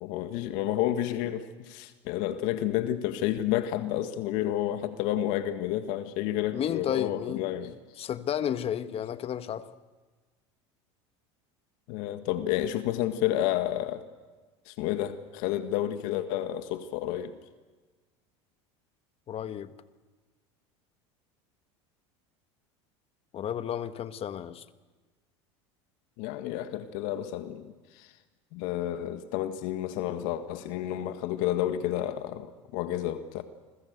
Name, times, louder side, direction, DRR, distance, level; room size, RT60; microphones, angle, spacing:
voice 1, 0.0-7.7 11.9-14.0 14.7-17.4 26.2-28.1 28.5-33.4, left 12 dB, 65° left, 9 dB, 1.7 m, -30 dB
voice 2, 6.5-7.6 8.0-9.7 19.3-19.7 23.3-24.6, left 10 dB, 40° left, 11 dB, 1.5 m, -32 dB
28.0 x 21.5 x 8.1 m, 1.3 s
hypercardioid pair, 95°, 15 cm